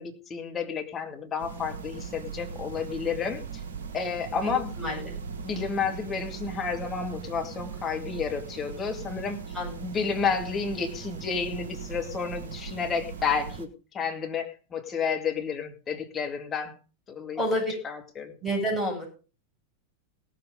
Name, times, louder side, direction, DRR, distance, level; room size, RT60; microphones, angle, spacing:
voice 1, 0.0-3.4 3.9-4.7 5.4-9.4 9.8-13.7 13.9-16.7 17.1-17.4 17.8-18.3, left 6 dB, 25° left, 4 dB, 2.3 m, -31 dB
sound 1, 1.4-13.7, right 6 dB, 60° right, 1.6 m, -39 dB
voice 2, 4.8-5.1 9.5-9.8 17.3-17.7 18.4-19.1, equal, ahead, -3 dB, 7.8 m, -28 dB
17.0 x 7.6 x 5.3 m, 0.36 s
figure-of-eight pair, 90°, 0 cm